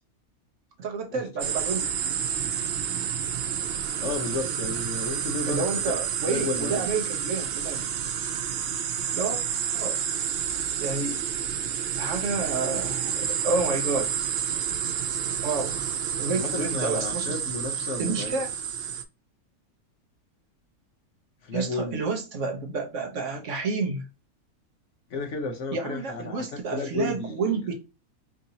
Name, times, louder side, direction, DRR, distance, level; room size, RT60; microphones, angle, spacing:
voice 1, 0.8-2.0 5.5-7.8 9.1-9.4 9.7-10.0 10.8-11.3 12.0-14.1 15.4-15.8 16.2-17.4 18.0-18.5 21.5-24.0 25.7-27.7, right 4 dB, 60° right, 1.0 m, -30 dB
sound 1, 1.4-19.0, right 8 dB, 85° right, 0.5 m, -29 dB
voice 2, 4.0-5.6 6.3-6.9 16.3-18.3 21.4-22.0 25.1-27.6, left 3 dB, 60° left, 1.0 m, -32 dB
4.6 x 2.7 x 2.7 m
omnidirectional pair, 1.6 m